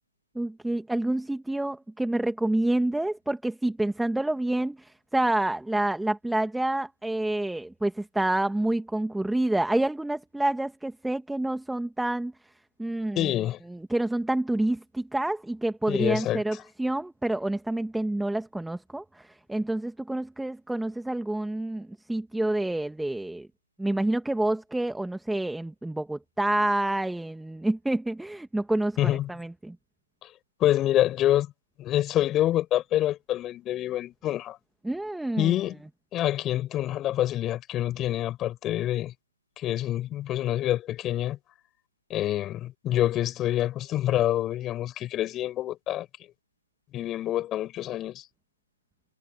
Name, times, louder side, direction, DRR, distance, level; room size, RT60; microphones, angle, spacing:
voice 1, 0.3-12.3 12.8-13.3 13.9-23.5 23.8-29.8 34.8-35.5, right 1 dB, ahead, 2.2 m, -28 dB
voice 2, 13.1-13.6 15.9-16.4 29.0-29.3 30.2-30.3 30.6-31.5 31.8-34.6 35.4-35.8 36.1-39.1 39.6-41.4 42.1-46.1 46.9-48.2, left 13 dB, 15° left, 6.6 m, -26 dB
figure-of-eight pair, 140°, 0 cm